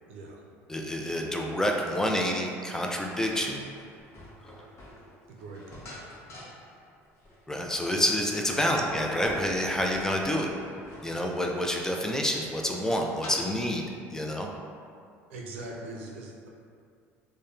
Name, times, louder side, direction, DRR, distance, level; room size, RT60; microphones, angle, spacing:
voice 1, 0.1-0.4 5.3-5.9 8.7-9.0 15.3-16.5, right 2 dB, 90° right, -2 dB, 0.4 m, -41 dB
voice 2, 0.7-3.6 7.5-10.5 11.0-13.8 14.1-14.5, equal, 10° left, 0 dB, 0.3 m, -28 dB
sound 1, 1.2-13.7, left 1 dB, 45° left, 0.7 m, -49 dB
sound 2, 8.5-11.5, left 1 dB, 70° left, 0.7 m, -45 dB
2.8 x 2.1 x 2.3 m, 2.3 s
supercardioid pair, 80°, 7 cm